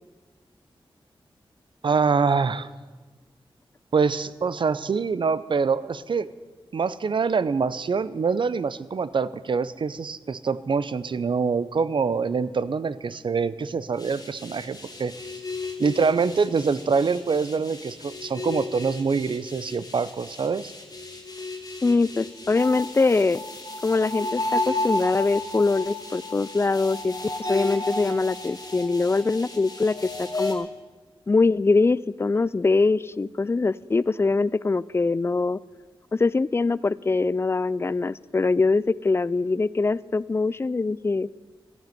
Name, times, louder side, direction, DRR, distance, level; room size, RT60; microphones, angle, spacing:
voice 1, 1.8-2.7 3.9-6.3 6.7-15.1 15.8-20.7, right 5 dB, 60° right, 16 dB, 0.6 m, -25 dB
sound 1, 14.0-30.5, left 2 dB, 40° left, 2.2 m, -33 dB
voice 2, 21.8-23.4 23.8-27.1 27.5-30.7 31.3-35.6 36.1-41.3, left 3 dB, 25° left, 20 dB, 0.3 m, -23 dB
13.5 x 9.4 x 9.2 m, 1.4 s
wide cardioid pair, 85°, 9 cm